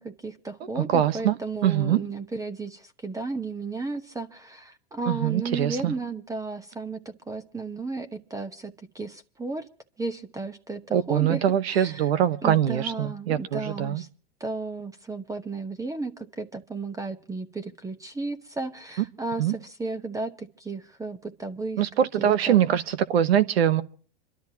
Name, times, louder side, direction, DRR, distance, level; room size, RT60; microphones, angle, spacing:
voice 1, 0.0-9.7 10.0-11.4 11.7-12.1 12.4-14.1 14.4-21.8 22.2-22.6, right 3 dB, 10° right, 1.0 m, -34 dB
voice 2, 0.8-2.0 5.1-5.9 10.9-14.0 19.4-19.5 21.8-23.8, right 10 dB, 85° right, 1.1 m, -23 dB
27.5 x 12.5 x 2.8 m
hypercardioid pair, 120°, 30 cm